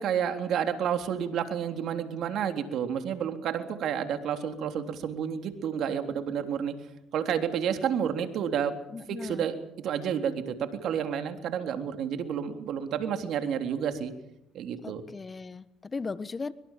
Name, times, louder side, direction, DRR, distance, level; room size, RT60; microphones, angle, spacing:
voice 1, 0.0-6.7 7.1-8.7 9.1-9.6 9.8-14.1 14.5-15.0, right 8 dB, 65° right, 7 dB, 3.5 m, -30 dB
voice 2, 8.9-9.4 14.8-16.5, left 4 dB, 30° left, 16 dB, 1.3 m, -37 dB
24.0 x 23.0 x 7.5 m, 0.81 s
supercardioid pair, 75°, 0 cm